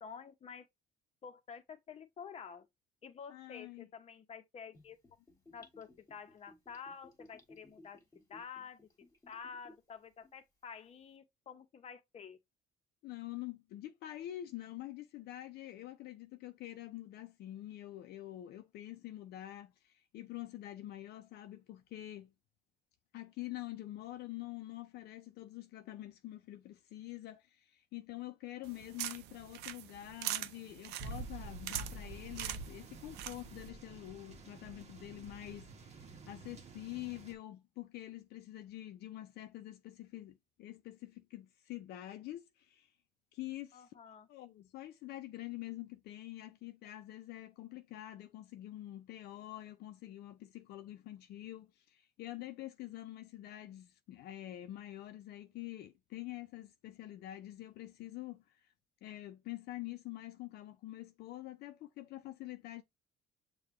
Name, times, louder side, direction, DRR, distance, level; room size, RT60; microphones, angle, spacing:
voice 1, 0.0-0.7 1.2-2.7 3.0-5.0 5.5-8.0 8.3-8.8 9.3-12.4 43.7-44.3, left 6 dB, 40° left, 0.8 m, -49 dB
voice 2, 3.3-3.9 13.0-22.3 23.1-42.9 43.3-58.7 59.0-62.8, left 15 dB, 70° left, 0.5 m, -46 dB
Gurgling / Bathtub (filling or washing), 4.7-9.9 10.2-10.3, left 2 dB, 20° left, 1.7 m, -60 dB
sound 1, 28.6-33.7, right 13 dB, 80° right, 0.5 m, -43 dB
sound 2, 31.0-37.3, right 3 dB, 40° right, 1.0 m, -48 dB
6.5 x 2.3 x 2.9 m
cardioid pair, 110°, 17 cm